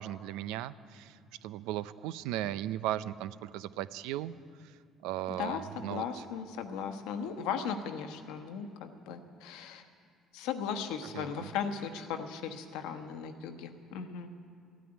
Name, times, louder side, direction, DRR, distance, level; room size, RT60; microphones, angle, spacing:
voice 1, 0.0-4.3 5.0-6.0 11.1-11.5, right 13 dB, 85° right, 15 dB, 0.5 m, -37 dB
voice 2, 5.3-9.8 10.3-14.3, left 7 dB, 85° left, 7 dB, 1.2 m, -37 dB
14.5 x 9.3 x 9.7 m, 2.3 s
supercardioid pair, 90°, 0 cm